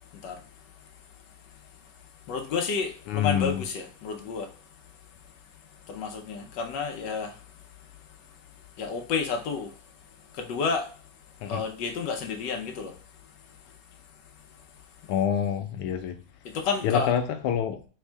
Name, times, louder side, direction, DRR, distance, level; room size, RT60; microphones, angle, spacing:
voice 1, 2.3-4.5 5.9-7.3 8.8-9.7 10.4-10.9 11.5-12.9 16.5-17.1, left 5 dB, 65° left, 1.2 m, -30 dB
voice 2, 3.1-3.6 11.4-11.6 15.1-16.2 16.8-17.8, left 9 dB, 85° left, 1.5 m, -26 dB
3.6 x 3.5 x 3.4 m
omnidirectional pair, 2.4 m